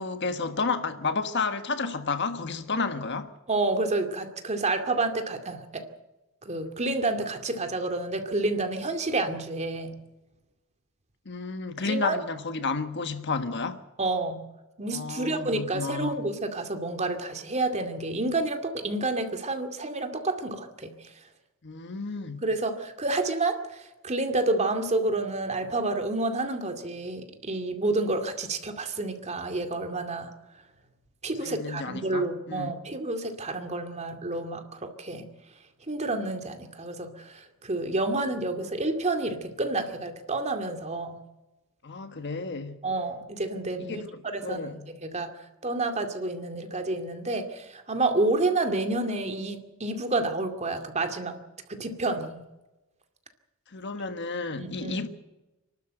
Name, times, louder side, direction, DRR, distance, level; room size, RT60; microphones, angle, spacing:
voice 1, 0.0-3.3 11.2-13.8 14.9-16.1 21.6-22.4 31.4-32.7 41.8-42.8 43.8-44.9 53.7-55.1, left 4 dB, 55° left, 1.4 m, -31 dB
voice 2, 3.5-5.8 6.4-10.0 11.8-12.2 14.0-14.4 14.8-20.9 22.4-30.3 31.2-35.3 35.9-41.2 42.8-44.0 44.3-51.4 51.7-52.4 54.6-55.0, right 2 dB, 35° right, 2.3 m, -29 dB
28.0 x 12.5 x 7.9 m
head